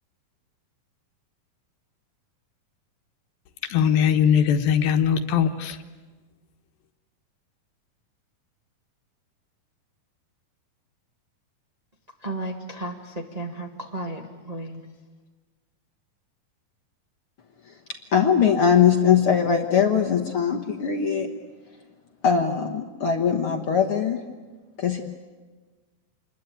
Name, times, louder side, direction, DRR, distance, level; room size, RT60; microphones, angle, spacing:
voice 1, 3.7-5.8, left 8 dB, 80° left, 2.9 m, -20 dB
voice 2, 12.2-14.9, right 1 dB, 25° right, 0.9 m, -34 dB
voice 3, 18.1-21.3 22.2-24.2 24.8-25.0, left 7 dB, 55° left, 1.6 m, -21 dB
27.5 x 21.5 x 9.3 m
omnidirectional pair, 4.2 m